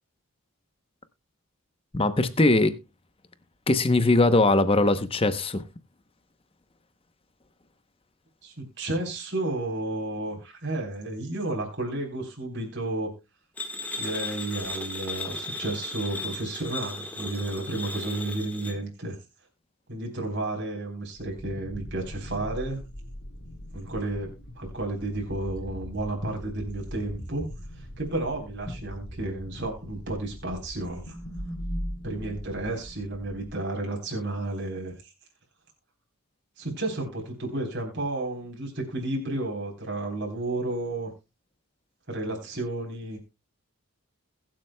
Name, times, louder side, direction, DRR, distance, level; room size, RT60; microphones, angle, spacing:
voice 1, 1.9-2.8 3.7-5.6, left 2 dB, 25° left, 0.8 m, -21 dB
voice 2, 8.4-13.1 14.0-19.2 19.9-22.8 23.7-27.5 27.7-31.2 32.0-35.1 36.6-41.1 42.1-43.2, right 2 dB, 50° right, 3.7 m, -32 dB
sound 1, 13.6-18.7, left 2 dB, 5° left, 1.5 m, -36 dB
sound 2, 21.2-33.5, equal, 70° left, 2.6 m, -40 dB
21.5 x 7.6 x 2.2 m
head